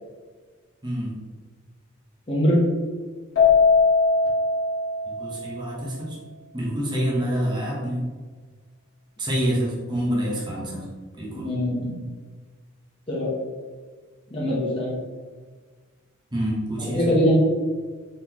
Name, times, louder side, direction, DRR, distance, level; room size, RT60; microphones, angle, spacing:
voice 1, 0.8-1.2 5.2-6.2 6.5-8.1 9.2-10.9 11.2-11.5 16.3-17.2, equal, 20° right, -5 dB, 0.9 m, -27 dB
voice 2, 2.3-2.7 11.3-12.0 13.1-13.4 14.3-15.0 16.8-17.3, equal, 25° left, -7 dB, 0.8 m, -22 dB
Keyboard (musical), 3.4-5.8, left 4 dB, 60° left, 1.2 m, -20 dB
3.9 x 3.8 x 2.9 m, 1.5 s
head